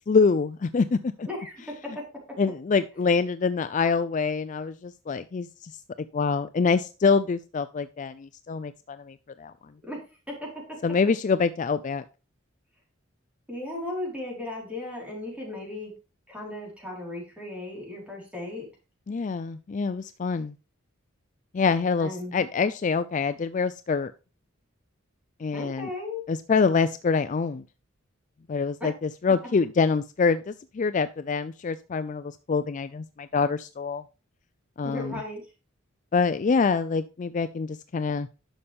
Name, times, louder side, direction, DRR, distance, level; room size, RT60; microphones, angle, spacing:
voice 1, 0.1-1.3 2.4-5.7 6.1-9.5 10.8-12.0 19.1-20.5 21.5-24.1 25.4-25.9 26.3-27.6 28.5-28.9 29.2-34.0 34.8-35.2 36.1-38.3, left 5 dB, 35° left, 12 dB, 0.4 m, -25 dB
voice 2, 1.2-1.5 9.8-10.0 10.3-10.5 13.5-15.9 16.3-18.7 22.0-22.3 25.5-26.2 28.8-28.9 29.3-29.4 34.8-35.4, left 2 dB, 5° right, -3 dB, 4.4 m, -36 dB
11.0 x 6.7 x 3.5 m, 0.32 s
head